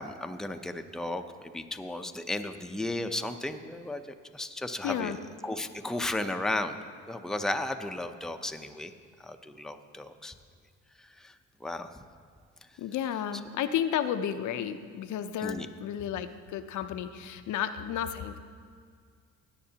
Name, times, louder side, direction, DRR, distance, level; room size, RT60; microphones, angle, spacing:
voice 1, 0.0-6.8 7.1-8.9 9.2-10.3 11.0-11.9 15.4-15.7, left 1 dB, ahead, 7 dB, 0.6 m, -35 dB
voice 2, 4.8-5.2 12.8-18.4, left 9 dB, 75° left, 9 dB, 0.6 m, -32 dB
17.5 x 9.5 x 2.8 m, 2.1 s
cardioid pair, 90°, 30 cm